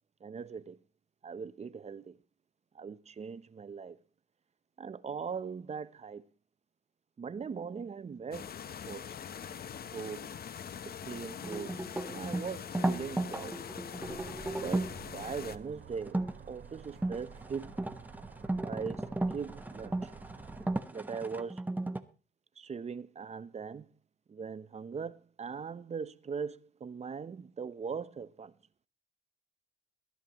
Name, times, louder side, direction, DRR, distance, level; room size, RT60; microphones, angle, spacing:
voice 1, 0.2-0.8 1.2-2.2 2.7-4.0 4.8-6.2 7.2-8.5 8.9-9.0 9.9-10.3 10.9-11.7 12.1-13.6 14.5-17.7 18.6-20.1 20.9-21.6 22.6-23.9 24.3-28.5, right 6 dB, 35° right, 0.7 m, -40 dB
sound 1, 8.3-15.6, left 8 dB, 50° left, 0.9 m, -43 dB
sound 2, 11.4-15.0 16.0-16.3 16.8-22.0, right 2 dB, 10° right, 1.1 m, -35 dB
sound 3, 14.0-20.8, right 6 dB, 60° right, 2.6 m, -51 dB
22.0 x 11.0 x 3.0 m
cardioid pair, 90°, 20 cm